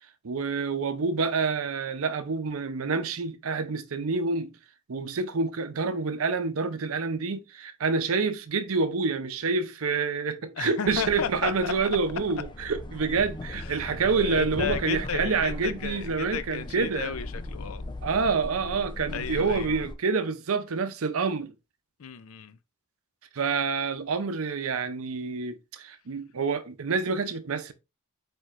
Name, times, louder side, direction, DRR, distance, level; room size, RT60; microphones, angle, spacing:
voice 1, 0.2-4.5 4.9-17.1 18.0-21.5 23.3-27.7, right 4 dB, 75° right, 0.6 m, -28 dB
voice 2, 10.6-11.7 13.6-17.8 19.1-19.7 22.0-22.6, left 7 dB, 75° left, 0.5 m, -34 dB
sound 1, 10.9-19.9, left 1 dB, 20° left, 0.5 m, -38 dB
4.6 x 4.3 x 2.5 m
head